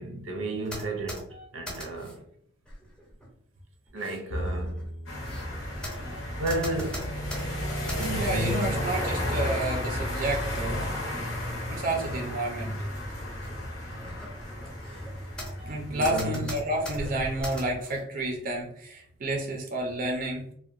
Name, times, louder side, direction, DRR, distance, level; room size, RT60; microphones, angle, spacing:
voice 1, 0.0-2.2 3.9-4.8 6.4-7.1 8.0-8.8 15.9-16.4, right 1 dB, 90° right, 0.6 m, -32 dB
sound 1, 0.6-2.2 2.7-3.3 3.9-8.6 9.0-9.5 10.5-10.6 11.1-12.2 12.6-12.9 13.4-13.5 14.0-15.7 16.0-18.0, equal, 5° left, 0.7 m, -41 dB
Bowed string instrument, 4.3-10.6, equal, 50° left, 0.3 m, -41 dB
sound 2, 5.1-17.8, left 1 dB, 80° left, 0.8 m, -33 dB
voice 2, 8.0-10.9 11.7-12.7 15.6-20.5, right 1 dB, 45° right, 0.4 m, -30 dB
2.7 x 2.1 x 2.4 m
head